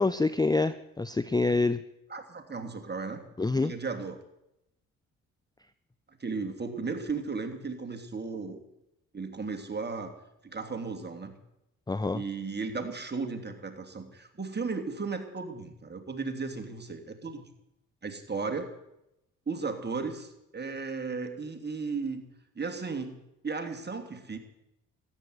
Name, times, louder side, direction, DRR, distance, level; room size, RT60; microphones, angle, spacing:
voice 1, 0.0-1.8 3.4-3.7 11.9-12.2, left 3 dB, 10° left, 14 dB, 0.6 m, -26 dB
voice 2, 2.1-3.2 3.5-4.2 6.2-8.6 9.1-10.1 10.4-11.3 12.1-17.5 18.0-18.7 19.5-22.2 22.5-23.2 23.4-24.4, right 4 dB, 25° right, 4 dB, 3.0 m, -35 dB
13.5 x 10.5 x 9.6 m, 0.86 s
hypercardioid pair, 50°, 39 cm